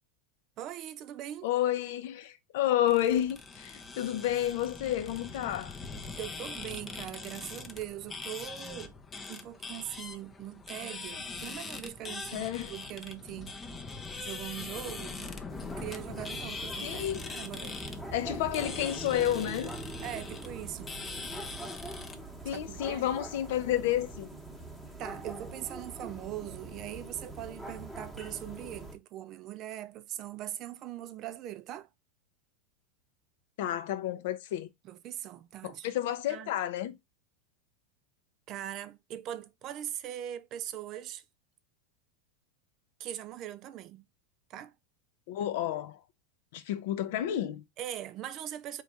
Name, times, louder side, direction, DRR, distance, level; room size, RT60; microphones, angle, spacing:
voice 1, 0.6-1.5 6.2-9.0 9.3-13.5 14.2-15.3 15.7-17.8 20.0-20.9 22.5-23.1 25.0-31.9 34.8-36.6 38.5-41.2 43.0-44.0 44.5-44.7 47.8-48.8, right 12 dB, 40° right, 0.4 m, -41 dB
voice 2, 1.4-5.8 12.3-12.7 16.8-17.3 18.1-19.7 22.4-24.3 33.6-34.7 35.8-37.0 45.3-46.0 46.5-47.6, left 12 dB, 65° left, 0.6 m, -30 dB
sound 1, 2.9-22.2, left 4 dB, 20° left, 0.5 m, -42 dB
sound 2, 15.5-29.0, right 2 dB, ahead, 1.0 m, -43 dB
4.1 x 3.0 x 3.4 m
supercardioid pair, 145°, 0 cm